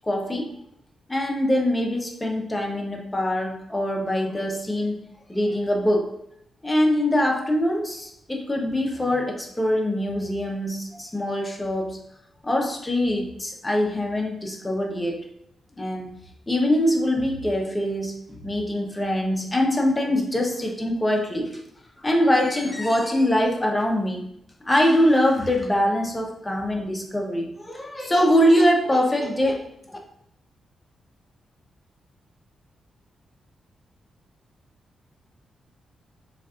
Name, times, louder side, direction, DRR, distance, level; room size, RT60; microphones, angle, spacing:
voice 1, 0.0-0.5 1.1-5.0 5.3-6.1 6.6-12.0 12.4-15.2 15.8-16.1 16.5-21.6 22.0-24.3 24.6-29.6, left 1 dB, 15° left, 0 dB, 0.7 m, -23 dB
3.9 x 2.4 x 2.4 m, 0.73 s
cardioid pair, 100°, 0 cm